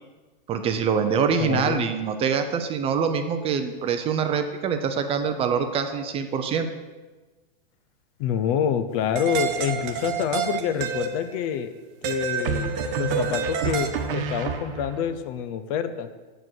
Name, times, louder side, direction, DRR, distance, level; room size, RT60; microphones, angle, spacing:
voice 1, 0.5-6.7, right 6 dB, 20° right, 7 dB, 0.6 m, -25 dB
voice 2, 1.4-1.9 8.2-11.7 12.0-16.1, left 8 dB, 35° left, 11 dB, 0.6 m, -27 dB
sound 1, 9.2-11.3 12.0-14.1, right 7 dB, 35° right, 1.0 m, -29 dB
sound 2, 9.8-10.4 12.4-15.1, right 5 dB, 65° right, 1.2 m, -30 dB
7.6 x 7.4 x 6.3 m, 1.3 s
hypercardioid pair, 140°, 31 cm